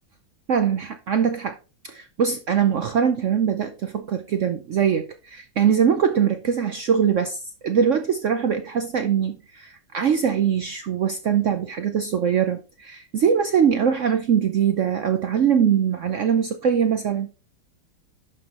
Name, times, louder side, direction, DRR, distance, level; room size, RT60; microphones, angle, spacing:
voice 1, 0.5-1.6 1.8-17.3, right 7 dB, 80° right, 0.6 m, -22 dB
11.5 x 5.7 x 2.9 m
omnidirectional pair, 2.2 m